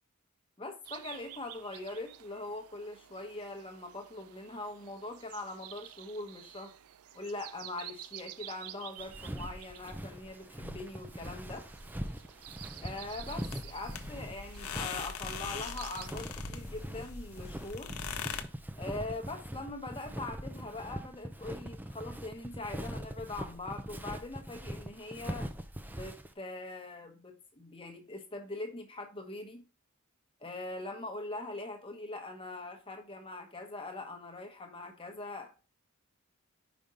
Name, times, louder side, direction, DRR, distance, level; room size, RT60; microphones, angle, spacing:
voice 1, 0.6-6.7 7.1-11.6 12.8-17.9 18.8-25.5 25.9-29.6 30.4-35.6, left 2 dB, 25° left, 4 dB, 1.1 m, -42 dB
sound 1, 0.8-16.1, right 13 dB, 80° right, 0.4 m, -51 dB
Walk footsteps, 9.0-26.3, right 1 dB, 10° right, 0.4 m, -42 dB
sound 2, 13.4-18.4, left 6 dB, 80° left, 0.7 m, -41 dB
5.2 x 5.0 x 4.2 m, 0.33 s
head